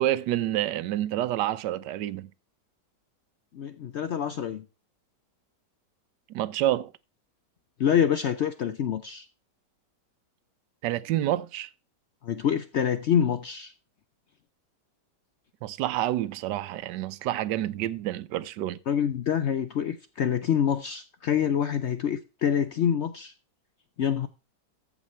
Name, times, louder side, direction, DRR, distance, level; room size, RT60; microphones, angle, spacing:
voice 1, 0.0-2.3 6.3-6.9 10.8-11.7 15.6-18.8, right 13 dB, 75° right, 1.2 m, -28 dB
voice 2, 3.5-4.6 7.8-9.3 12.2-13.7 18.9-23.3 24.0-24.3, left 8 dB, 80° left, 0.6 m, -26 dB
14.5 x 4.9 x 4.3 m
omnidirectional pair, 1.9 m